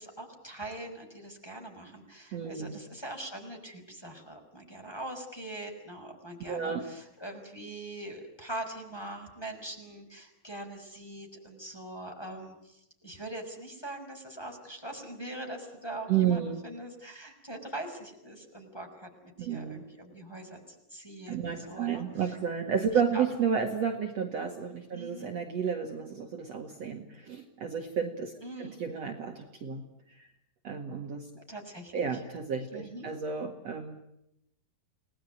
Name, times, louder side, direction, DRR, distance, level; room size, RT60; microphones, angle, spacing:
voice 1, 0.0-22.3 22.9-23.3 25.0-25.3 28.4-28.8 31.5-31.9 32.7-33.1, right 1 dB, 5° left, 2 dB, 5.2 m, -42 dB
voice 2, 2.3-2.8 6.5-6.8 16.1-16.6 19.4-19.8 21.3-28.3 28.6-29.8 30.1-30.3 30.6-31.3 31.9-34.0, right 7 dB, 50° right, 4 dB, 2.8 m, -31 dB
30.0 x 20.0 x 9.4 m, 0.82 s
omnidirectional pair, 4.1 m